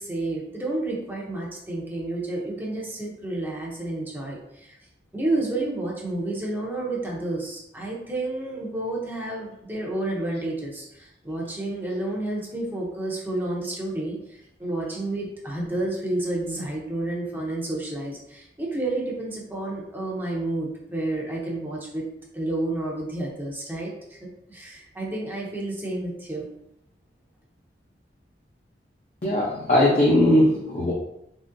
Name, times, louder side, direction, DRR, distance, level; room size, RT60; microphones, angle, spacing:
voice 1, 0.0-4.8 5.1-22.0 22.3-24.2 24.5-26.5, right 2 dB, 10° right, -3 dB, 0.7 m, -30 dB
voice 2, 29.2-30.9, left 1 dB, 35° left, -5 dB, 0.6 m, -19 dB
3.7 x 3.1 x 2.6 m, 0.79 s
head